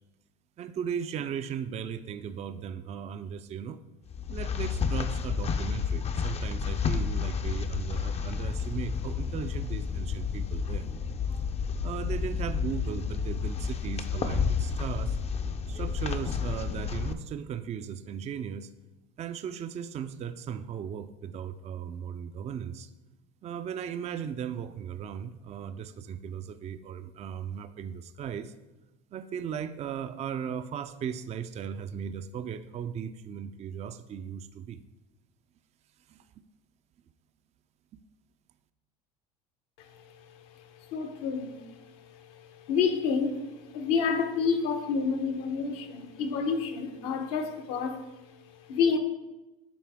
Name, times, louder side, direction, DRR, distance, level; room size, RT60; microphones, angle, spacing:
voice 1, 0.6-3.8 4.3-10.9 11.8-15.2 15.7-18.7 19.2-22.9 23.4-28.5 29.1-34.8 36.1-36.2, right 8 dB, 30° right, 0.4 m, -37 dB
sound 1, 4.1-17.1, left 6 dB, 30° left, 0.5 m, -31 dB
voice 2, 39.8-49.0, left 5 dB, 70° left, 1.0 m, -30 dB
10.0 x 4.1 x 3.6 m
hypercardioid pair, 85°, 21 cm